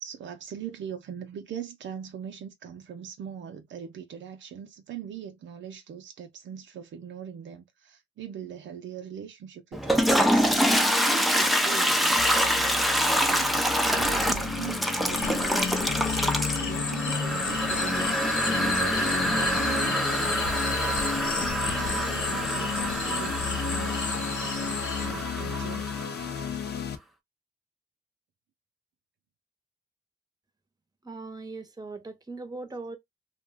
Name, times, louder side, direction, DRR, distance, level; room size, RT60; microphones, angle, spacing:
voice 1, 0.0-13.5 14.0-20.4 21.1-26.0, right 8 dB, 75° right, 0.6 m, -41 dB
Toilet flush, 9.7-26.5, equal, ahead, 0.5 m, -26 dB
sound 1, 12.2-27.0, left 6 dB, 60° left, 0.6 m, -33 dB
sound 2, 15.1-25.1, left 4 dB, 80° left, 1.2 m, -34 dB
voice 2, 31.0-33.0, right 3 dB, 20° right, 0.9 m, -39 dB
2.3 x 2.2 x 3.2 m
cardioid pair, 60°, 19 cm